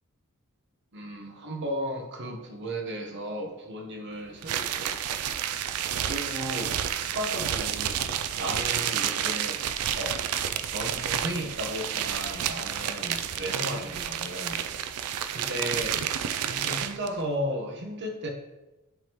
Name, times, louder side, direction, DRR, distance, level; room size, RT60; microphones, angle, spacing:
voice 1, 0.9-4.9 6.0-9.6 9.9-10.2 10.7-14.6 15.3-16.1 16.4-18.3, equal, 55° right, 2 dB, 1.1 m, -35 dB
sound 1, 4.4-17.1, right 9 dB, 85° right, 0.4 m, -30 dB
10.5 x 3.6 x 3.0 m, 1.0 s
head